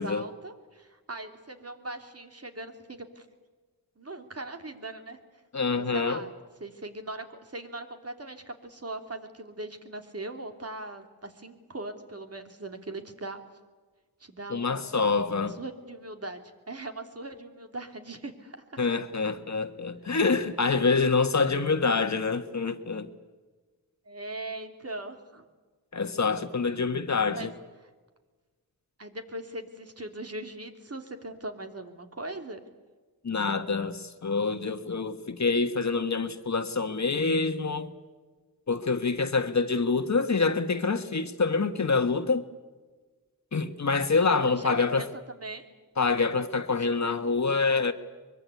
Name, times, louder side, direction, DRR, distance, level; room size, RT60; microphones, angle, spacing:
voice 1, 0.0-3.3 4.0-5.2 5.8-6.3 6.6-13.4 14.2-14.9 15.4-16.4 16.7-18.8 24.0-25.4 27.3-27.5 27.8-27.9 29.0-32.6 44.5-45.1 45.4-45.6, right 2 dB, 40° right, 3.1 m, -40 dB
voice 2, 5.5-6.2 14.5-15.6 18.8-23.1 25.9-27.5 33.2-37.9 38.7-42.5 43.5-45.1 46.0-47.9, left 4 dB, 45° left, 1.6 m, -26 dB
24.0 x 22.5 x 8.5 m
wide cardioid pair, 75°, 38 cm